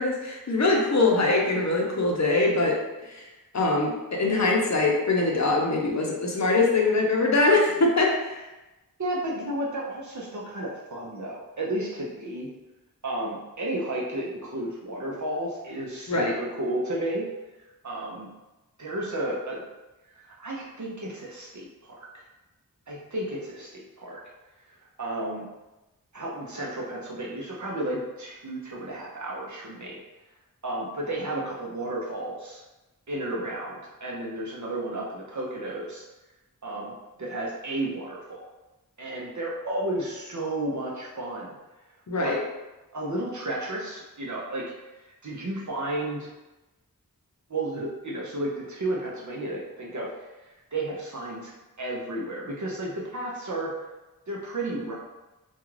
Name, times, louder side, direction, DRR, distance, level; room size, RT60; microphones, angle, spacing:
voice 1, 0.0-2.8 3.1-3.2 3.5-8.4 16.1-16.4 42.1-42.4, left 3 dB, 50° left, -1 dB, 0.6 m, -23 dB
voice 2, 9.0-12.5 13.0-17.3 17.8-18.3 18.8-19.6 20.1-21.9 22.9-24.2 25.0-25.5 26.1-30.0 30.6-32.6 33.1-36.0 36.6-38.4 39.0-41.5 42.2-42.4 42.9-44.6 45.2-46.3 47.5-50.1 50.7-51.5 51.8-53.7 54.3-54.9, right 1 dB, 55° right, -4 dB, 0.6 m, -32 dB
2.4 x 2.3 x 3.1 m, 1.0 s
wide cardioid pair, 50°, 36 cm